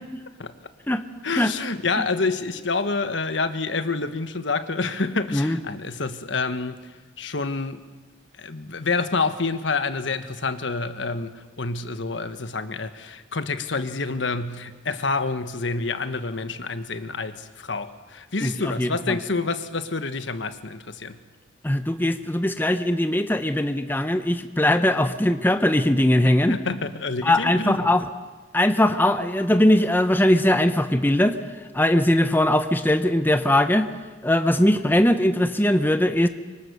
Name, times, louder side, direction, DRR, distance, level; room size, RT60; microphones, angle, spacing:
voice 1, 1.2-6.8 7.2-7.8 8.4-21.2 26.5-27.9, left 3 dB, 75° left, 10 dB, 1.3 m, -28 dB
voice 2, 18.8-19.2 21.6-26.5 27.2-28.0 28.5-31.4 31.7-33.9 34.2-36.3, left 1 dB, 10° left, 9 dB, 0.8 m, -20 dB
24.5 x 24.5 x 6.9 m, 1.4 s
head